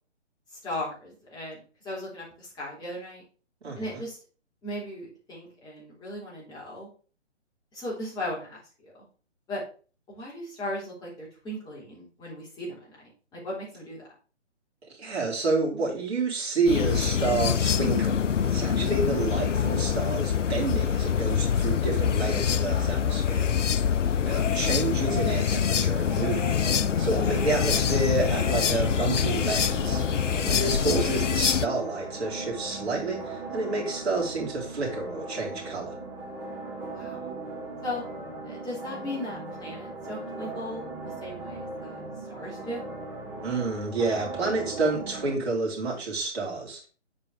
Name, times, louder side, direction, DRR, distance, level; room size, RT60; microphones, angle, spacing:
voice 1, 0.5-3.2 3.8-4.2 4.6-6.9 7.7-8.9 9.5-9.6 10.1-14.0 24.2-24.6 36.9-37.3 37.8-38.0 38.4-40.9 41.2-42.0 42.3-42.8, left 1 dB, 10° left, -6 dB, 3.7 m, -37 dB
voice 2, 3.6-4.0 14.9-23.5 24.2-30.0 30.5-36.0 43.4-46.9, right 3 dB, 60° right, -3 dB, 3.7 m, -29 dB
sound 1, 16.6-31.7, left 8 dB, 85° left, 0.6 m, -25 dB
sound 2, 26.0-45.3, right 2 dB, 5° right, 0.6 m, -38 dB
7.0 x 5.2 x 4.7 m, 0.38 s
figure-of-eight pair, 140°, 36 cm